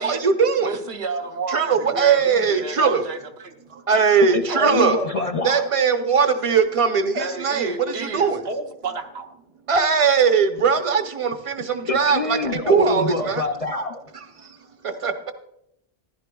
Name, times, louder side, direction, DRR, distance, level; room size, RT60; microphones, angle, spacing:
voice 1, 0.0-0.7 1.5-3.0 3.7-5.0 5.4-8.4 9.7-13.4 14.4-14.6 14.8-15.3, right 6 dB, 35° right, 8 dB, 0.7 m, -20 dB
voice 2, 0.6-3.5 3.9-4.0 4.5-4.6 7.1-9.3, right 3 dB, 85° right, 4 dB, 1.2 m, -31 dB
voice 3, 4.3-5.6 11.9-14.0, left 3 dB, 50° left, 5 dB, 0.5 m, -25 dB
14.5 x 11.0 x 2.3 m, 0.80 s
omnidirectional pair, 1.1 m